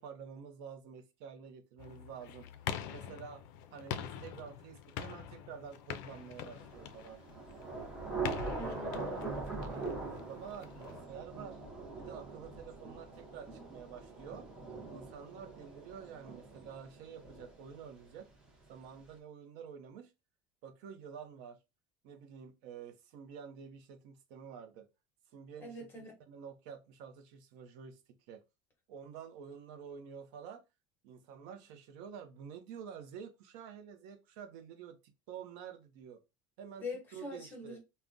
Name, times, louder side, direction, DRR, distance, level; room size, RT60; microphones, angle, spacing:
voice 1, 0.0-3.4 3.7-7.2 9.6-11.6 12.0-14.5 14.9-18.3 18.7-20.1 20.6-21.6 22.0-24.9 25.3-28.0 28.3-28.4 28.9-30.6 31.0-35.0 35.3-36.2 36.6-36.9 37.1-37.8, right 7 dB, 55° right, 0.6 m, -49 dB
sound 1, 1.8-11.0, left 9 dB, 70° left, 0.4 m, -45 dB
Thunder / Rain, 6.5-18.1, right 3 dB, 5° right, 0.6 m, -42 dB
voice 2, 8.6-9.2 25.6-26.1 36.8-37.8, left 2 dB, 15° left, 1.0 m, -43 dB
3.5 x 2.1 x 2.5 m
cardioid pair, 175°, 11 cm